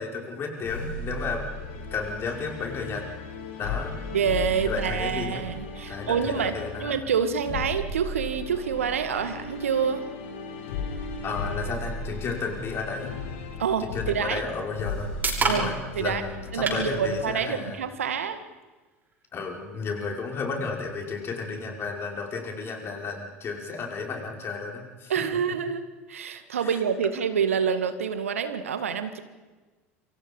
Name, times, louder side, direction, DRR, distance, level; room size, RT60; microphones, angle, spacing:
voice 1, 0.0-3.1 3.6-4.0 4.6-5.5 5.9-7.0 11.2-13.1 13.8-15.1 15.4-17.8 19.3-25.1 26.6-26.8, left 4 dB, 35° left, 1 dB, 5.7 m, -33 dB
sound 1, 0.6-17.4, left 3 dB, 60° left, 4.1 m, -36 dB
voice 2, 4.1-6.5 6.8-10.1 13.6-14.4 15.5-16.2 16.5-18.4 25.1-25.8 26.1-29.2, right 7 dB, 75° right, 10 dB, 1.9 m, -27 dB
sound 2, 14.5-28.4, right 3 dB, 25° right, 7.3 m, -38 dB
28.5 x 25.0 x 5.5 m, 1.3 s
figure-of-eight pair, 75°, 7 cm